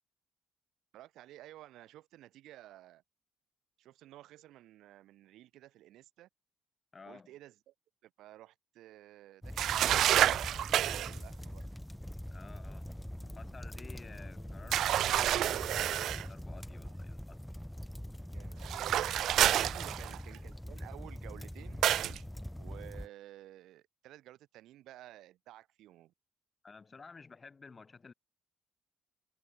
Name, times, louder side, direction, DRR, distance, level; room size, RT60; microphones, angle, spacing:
voice 1, 0.9-3.0 3.8-6.3 7.1-7.7 8.0-11.6 16.7-17.0 18.3-18.8 19.5-21.8 22.6-26.1, right 14 dB, 80° right, 5.1 m, -54 dB
voice 2, 6.9-7.3 12.3-12.9 13.3-17.4 19.7-20.0 26.6-28.1, left 4 dB, 20° left, 4.4 m, -53 dB
sound 1, 9.4-23.1, equal, ahead, 0.8 m, -43 dB
sound 2, 9.6-11.2 14.7-16.3 18.6-20.4 21.8-22.2, right 12 dB, 60° right, 0.6 m, -28 dB
sound 3, 13.2-16.8, left 9 dB, 45° left, 4.0 m, -64 dB
cardioid pair, 175°, 0 cm